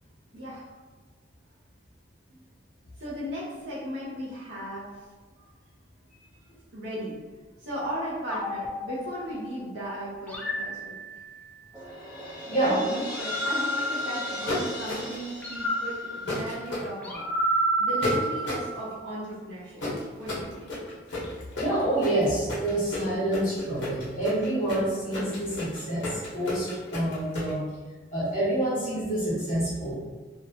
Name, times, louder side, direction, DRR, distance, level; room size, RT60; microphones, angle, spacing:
voice 1, 0.3-0.7 3.0-5.0 6.7-7.2 7.6-11.0 12.4-17.3 17.8-19.8 20.2-20.7, equal, 65° right, -8 dB, 0.6 m, -36 dB
sound 1, 8.3-9.6 10.3-11.5 13.0-14.8 15.4-18.9, right 1 dB, 10° left, 0.3 m, -31 dB
Crash cymbal, 11.7-16.7, equal, 10° right, 0.7 m, -38 dB
voice 2, 12.5-12.8 21.6-27.6 28.1-29.9, right 1 dB, 40° left, -8 dB, 1.0 m, -27 dB
sound 2, 14.5-15.3 16.3-16.8 18.0-18.7 19.8-27.5, left 2 dB, 70° left, 0.9 m, -33 dB
2.8 x 2.2 x 2.7 m, 1.3 s
head